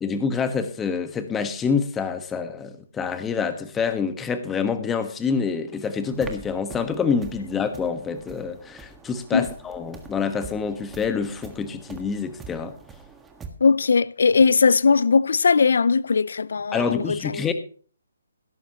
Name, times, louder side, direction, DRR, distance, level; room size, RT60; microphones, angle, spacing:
voice 1, 0.0-12.7 16.7-17.5, left 5 dB, 10° left, 1.3 m, -27 dB
sound 1, 6.0-13.5, right 5 dB, 10° right, 1.6 m, -44 dB
voice 2, 13.6-17.5, left 5 dB, 70° left, 0.5 m, -19 dB
17.0 x 13.0 x 3.0 m
hypercardioid pair, 145°, 0 cm